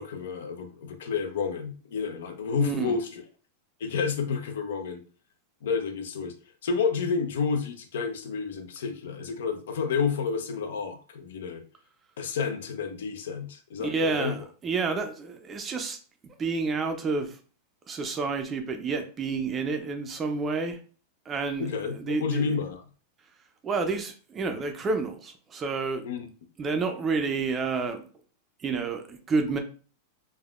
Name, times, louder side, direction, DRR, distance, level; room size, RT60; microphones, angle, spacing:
voice 1, 0.0-3.2 3.8-5.0 5.6-6.3 6.6-11.6 12.2-14.3 21.6-22.8 26.0-26.3, left 5 dB, 80° left, 0.5 m, -30 dB
voice 2, 2.6-2.9 13.8-16.0 16.2-17.4 17.9-20.8 21.3-22.4 23.6-26.0 26.6-28.0 28.6-29.6, right 4 dB, 20° right, 0.4 m, -29 dB
3.4 x 2.1 x 2.3 m
supercardioid pair, 150°, 0 cm